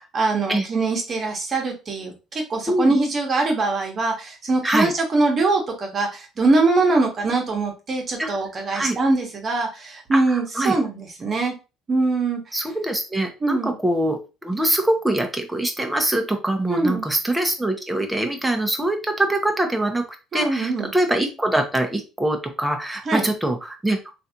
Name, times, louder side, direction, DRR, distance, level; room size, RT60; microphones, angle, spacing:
voice 1, 0.1-11.5 11.9-12.7 13.4-13.7 16.7-17.1 20.3-20.9 23.0-23.2, right 3 dB, 40° right, 2 dB, 1.2 m, -22 dB
voice 2, 10.1-10.8 12.5-20.0 20.3-24.0, right 1 dB, 10° right, 5 dB, 0.9 m, -23 dB
3.2 x 2.6 x 2.8 m, 0.30 s
supercardioid pair, 75°, 0 cm